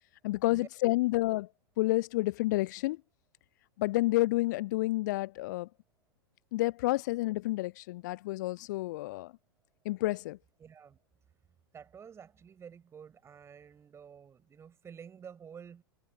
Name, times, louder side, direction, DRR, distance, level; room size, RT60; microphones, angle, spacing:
voice 1, 0.2-1.5 1.8-3.0 3.8-5.7 6.5-9.3 9.9-10.4, left 19 dB, 50° left, 0.4 m, -29 dB
voice 2, 10.6-11.0 11.7-15.8, right 7 dB, 20° right, 7.5 m, -50 dB
figure-of-eight pair, 95°, 13 cm